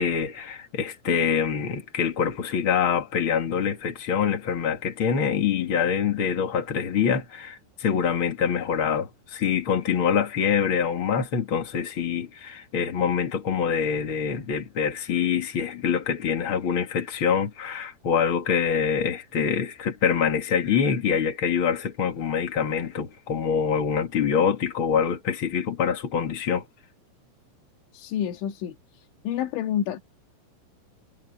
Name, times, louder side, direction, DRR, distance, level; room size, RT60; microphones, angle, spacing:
voice 1, 0.0-26.6, left 7 dB, 50° left, 1.5 m, -25 dB
voice 2, 27.9-30.0, left 10 dB, 70° left, 4.3 m, -29 dB
omnidirectional pair, 5.7 m